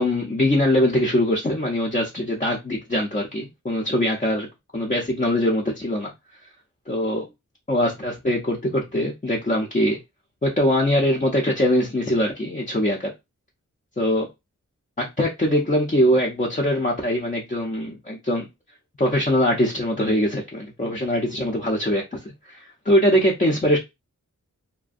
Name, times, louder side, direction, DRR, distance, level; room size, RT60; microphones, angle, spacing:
voice 1, 0.0-4.5 4.7-6.1 6.9-7.2 7.7-10.0 10.4-13.1 14.0-14.3 15.0-18.5 19.0-23.8, left 1 dB, 25° left, 0.5 m, -22 dB
2.5 x 2.1 x 2.4 m
wide cardioid pair, 60°, 30 cm